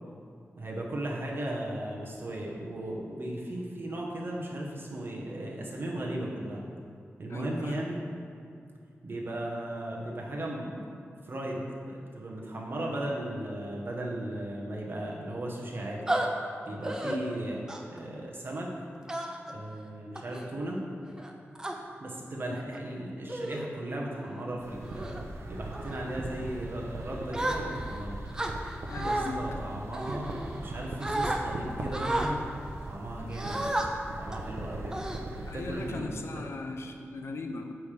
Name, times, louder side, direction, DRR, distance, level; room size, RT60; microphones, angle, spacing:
voice 1, 0.6-6.6 7.2-8.0 9.0-10.8 11.3-16.1 16.7-17.6 17.9-18.7 19.5-20.8 22.0-25.2 25.5-28.2 29.0-30.3 30.6-32.4 32.8-33.8 34.2-34.9 35.5-36.5, right 1 dB, 50° right, -2 dB, 1.2 m, -36 dB
voice 2, 7.3-7.8 17.0-17.2 22.5-22.6 28.9-29.5 35.5-37.7, left 3 dB, 65° left, 4 dB, 0.6 m, -38 dB
sound 1, 16.1-16.3 16.8-17.2 17.7-18.0 19.1-19.5 20.1-20.4 21.2-21.7 22.6-22.8 23.3-23.7 24.1-24.4 24.9-25.2 25.7-26.0 27.3-28.0 28.3-29.3 29.9-30.7 31.0-31.4 31.9-32.3 33.3-33.9 34.3-34.5 34.9-35.6, right 1 dB, 15° right, 0.6 m, -32 dB
sound 2, 24.6-36.0, right 2 dB, 80° right, 0.8 m, -40 dB
9.2 x 3.4 x 6.7 m, 2.4 s
wide cardioid pair, 135°, 5 cm